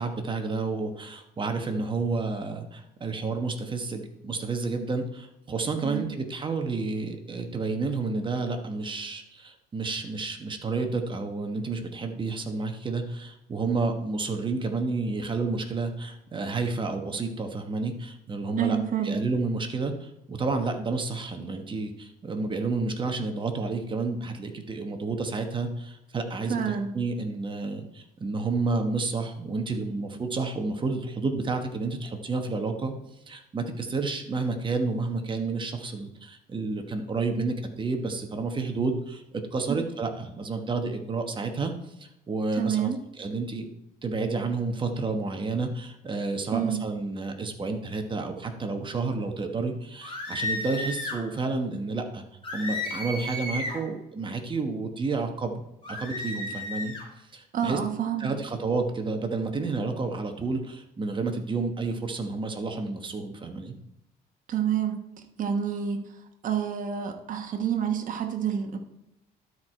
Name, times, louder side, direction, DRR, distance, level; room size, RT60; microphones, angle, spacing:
voice 1, 0.0-18.8 19.0-32.9 33.3-43.7 44.0-52.2 52.5-55.5 55.9-56.9 57.3-57.8 58.2-63.7, right 3 dB, 30° right, 5 dB, 1.2 m, -30 dB
voice 2, 5.8-6.1 18.6-19.2 26.5-26.9 42.6-43.0 46.5-46.8 57.5-58.3 64.5-65.0 65.4-66.0 66.4-68.8, right 8 dB, 50° right, 4 dB, 1.3 m, -28 dB
sound 1, 50.0-51.2 52.4-53.9 55.8-57.1, left 2 dB, 30° left, 3.2 m, -33 dB
12.5 x 4.8 x 4.4 m, 0.88 s
cardioid pair, 110°, 17 cm